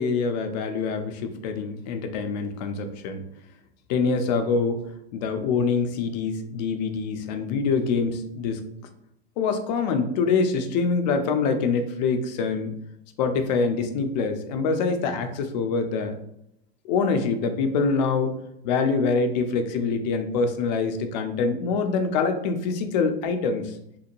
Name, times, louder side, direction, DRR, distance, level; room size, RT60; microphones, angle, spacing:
voice 1, 0.0-3.2 3.9-4.9 5.1-8.6 9.4-12.8 13.2-16.1 16.8-18.3 18.6-23.8, left 4 dB, 45° left, 7 dB, 0.5 m, -25 dB
2.9 x 2.1 x 2.5 m, 0.78 s
figure-of-eight pair, 95°, 31 cm